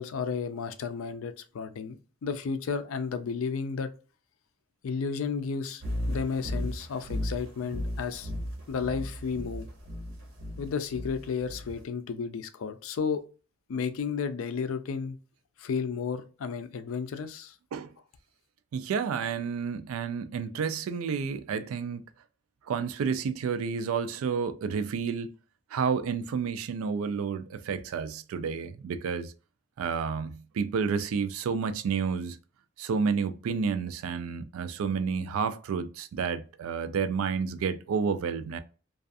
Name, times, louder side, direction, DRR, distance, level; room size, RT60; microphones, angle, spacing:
voice 1, 0.0-3.9 4.8-8.3 8.7-9.7 10.6-13.2 13.7-15.2 15.6-17.5, left 5 dB, 85° left, 0.4 m, -33 dB
sound 1, 5.8-11.8, left 1 dB, 70° right, 0.7 m, -35 dB
voice 2, 18.7-22.0 22.7-25.3 25.7-29.3 29.8-32.4 32.8-38.6, right 6 dB, 90° right, 0.3 m, -30 dB
2.4 x 2.3 x 2.5 m
head